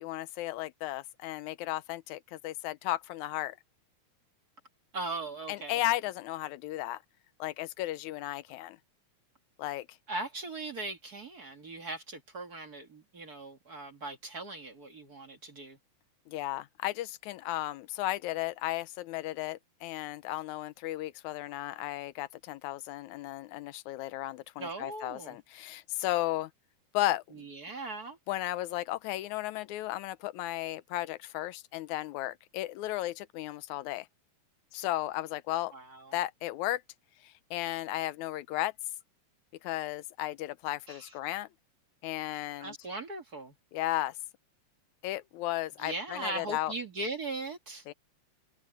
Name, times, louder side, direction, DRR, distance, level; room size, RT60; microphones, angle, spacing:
voice 1, 0.0-3.6 5.5-7.0 7.4-8.8 9.6-9.9 16.3-26.5 26.9-27.4 28.3-34.1 34.7-35.7 36.1-36.8 37.2-38.7 39.6-41.5 42.0-42.8 43.7-44.2 45.0-46.7 47.9-48.0, left 15 dB, 85° left, 2.1 m, -34 dB
voice 2, 4.9-5.8 10.1-15.8 24.6-25.4 27.3-28.2 35.7-36.1 40.9-41.1 42.3-43.5 45.8-47.8, right 2 dB, 35° right, 2.0 m, -39 dB
omnidirectional pair, 3.3 m